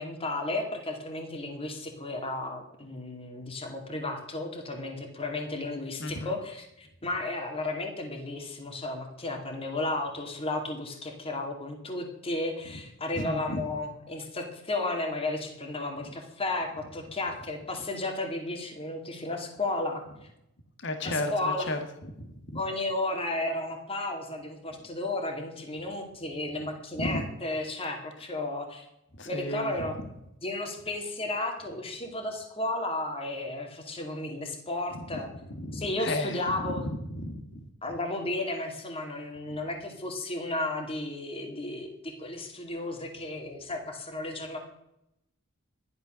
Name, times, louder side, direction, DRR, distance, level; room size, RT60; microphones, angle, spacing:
voice 1, 0.0-20.0 21.0-21.7 22.5-28.9 29.3-30.0 30.4-35.3 35.7-36.8 37.8-44.6, left 2 dB, 30° left, 3 dB, 2.4 m, -33 dB
voice 2, 6.0-6.4 13.1-13.6 20.8-21.8 22.2-22.6 27.0-27.3 29.1-29.7 35.0-35.1 35.5-37.7, left 1 dB, 60° left, 6 dB, 1.8 m, -34 dB
13.5 x 11.5 x 6.4 m, 0.83 s
head